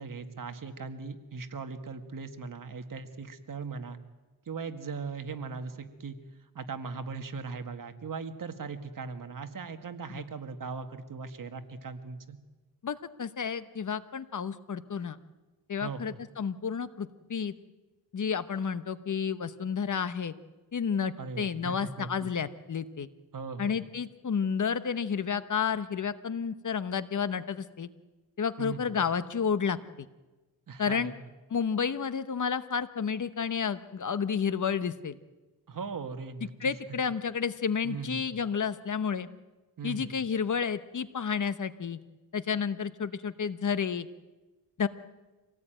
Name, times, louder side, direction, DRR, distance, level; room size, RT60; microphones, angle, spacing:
voice 1, 0.0-4.0 4.5-6.2 6.5-12.4 15.8-16.2 21.2-22.3 23.3-23.9 28.6-28.9 30.7-31.1 35.7-36.7 37.8-38.2 39.8-40.1, right 5 dB, 50° right, 8 dB, 1.9 m, -39 dB
voice 2, 12.8-15.2 15.7-17.5 18.1-20.3 20.7-23.1 23.6-27.9 28.4-29.8 30.8-31.1 31.5-35.2 36.6-39.3 39.8-42.0 42.3-44.1 44.8-44.9, left 6 dB, 45° left, 13 dB, 1.0 m, -31 dB
26.0 x 18.0 x 9.1 m, 1.2 s
wide cardioid pair, 110°, 41 cm